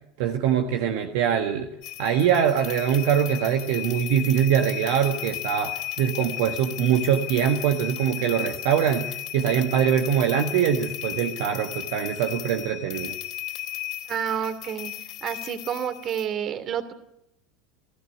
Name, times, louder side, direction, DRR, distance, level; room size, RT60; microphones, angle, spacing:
voice 1, 0.2-1.7 2.0-13.1, right 9 dB, 60° right, 6 dB, 1.6 m, -23 dB
sound 1, 1.8-16.3, left 16 dB, 50° left, 3.4 m, -35 dB
voice 2, 14.1-14.9 15.2-16.9, right 8 dB, 40° right, 12 dB, 2.8 m, -29 dB
29.0 x 15.5 x 9.3 m, 0.85 s
figure-of-eight pair, 75°, 0 cm